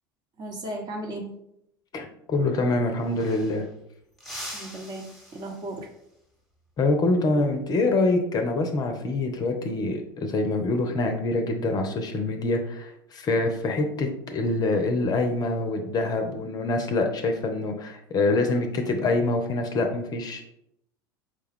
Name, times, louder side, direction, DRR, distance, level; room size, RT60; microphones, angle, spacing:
voice 1, 0.4-1.3 4.5-5.9, right 1 dB, 35° right, 1 dB, 1.0 m, -35 dB
voice 2, 1.9-3.6 6.8-20.4, left 2 dB, 35° left, 5 dB, 0.6 m, -25 dB
sound 1, 2.9-3.8 4.2-6.0 8.4-8.7 10.1-10.6, equal, ahead, 1.1 m, -43 dB
4.8 x 2.3 x 3.5 m, 0.77 s
hypercardioid pair, 75°, 11 cm